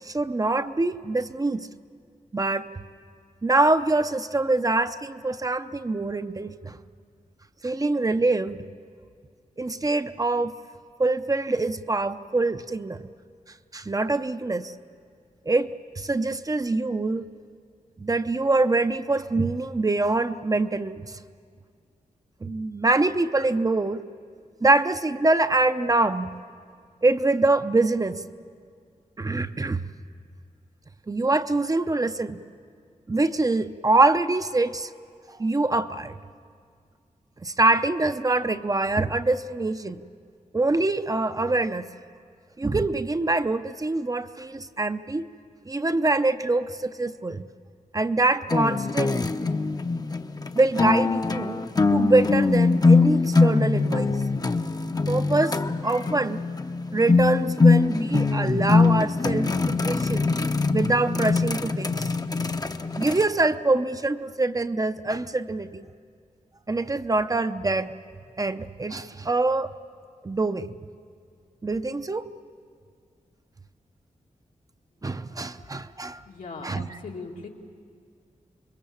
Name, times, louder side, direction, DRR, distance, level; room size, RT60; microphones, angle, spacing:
voice 1, 0.0-1.7 2.3-2.7 3.4-6.8 7.6-8.6 9.6-10.5 11.0-13.1 13.7-14.7 15.5-17.3 18.0-21.2 22.4-24.0 24.6-26.3 27.0-28.2 29.2-29.8 31.1-32.4 33.1-34.9 35.3-36.1 37.4-40.0 40.5-41.9 42.6-45.2 45.7-47.5 47.9-49.2 50.5-51.7 51.9-54.2 55.1-56.4 56.9-60.3 60.7-62.1 63.0-65.9 66.7-67.9 68.4-69.7 70.2-70.7 71.6-72.3 75.0-76.2 76.6-77.0, right 2 dB, 25° right, 10 dB, 0.7 m, -24 dB
sound 1, 48.5-63.3, left 3 dB, 30° left, 0.7 m, -22 dB
voice 2, 76.3-77.5, left 4 dB, 90° left, 0 dB, 2.3 m, -39 dB
26.5 x 21.5 x 7.1 m, 2.1 s
wide cardioid pair, 90°, 14 cm